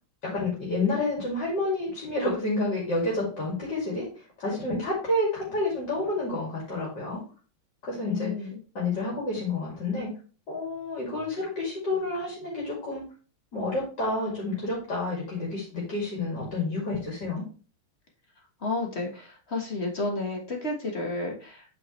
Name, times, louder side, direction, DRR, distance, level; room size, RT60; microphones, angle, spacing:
voice 1, 0.2-4.1 4.4-7.2 7.8-8.5 8.7-10.1 10.5-13.0 13.5-17.5, left 2 dB, 50° left, -4 dB, 3.1 m, -29 dB
voice 2, 8.0-8.6 18.6-21.6, left 2 dB, 35° left, 1 dB, 1.4 m, -31 dB
8.5 x 5.2 x 3.2 m, 0.36 s
omnidirectional pair, 2.4 m